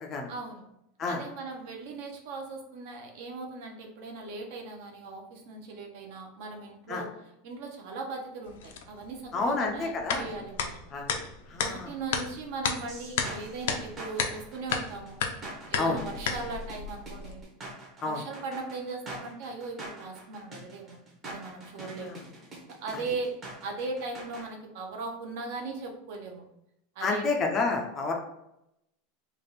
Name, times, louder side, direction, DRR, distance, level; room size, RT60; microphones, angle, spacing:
voice 1, 0.3-0.6 1.1-7.1 7.4-10.8 11.5-15.2 15.7-17.4 18.0-22.2 22.8-23.3 23.6-26.4 26.9-27.2, right 3 dB, 50° right, 2 dB, 0.7 m, -38 dB
sound 1, 8.5-17.4, left 6 dB, 75° left, 0.5 m, -34 dB
voice 2, 9.3-10.3 10.9-11.1 11.5-11.9 15.8-16.0 18.0-18.2 21.8-22.2 22.9-23.0 27.0-28.1, left 3 dB, 20° left, 2 dB, 0.4 m, -30 dB
sound 2, 12.9-24.5, right 2 dB, 20° right, 0.8 m, -44 dB
3.4 x 2.4 x 3.9 m, 0.83 s
supercardioid pair, 180°, 0 cm